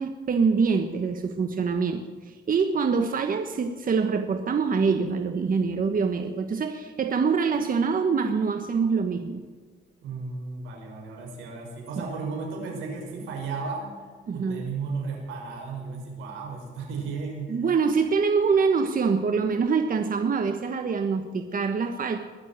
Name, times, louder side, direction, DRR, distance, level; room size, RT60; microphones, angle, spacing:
voice 1, 0.0-9.4 12.0-12.1 14.3-14.7 17.5-22.2, right 5 dB, 45° right, 6 dB, 1.3 m, -25 dB
voice 2, 10.0-13.9 14.3-17.6, right 4 dB, 90° right, -1 dB, 6.0 m, -34 dB
21.5 x 7.4 x 9.0 m, 1.5 s
cardioid pair, 90°, 20 cm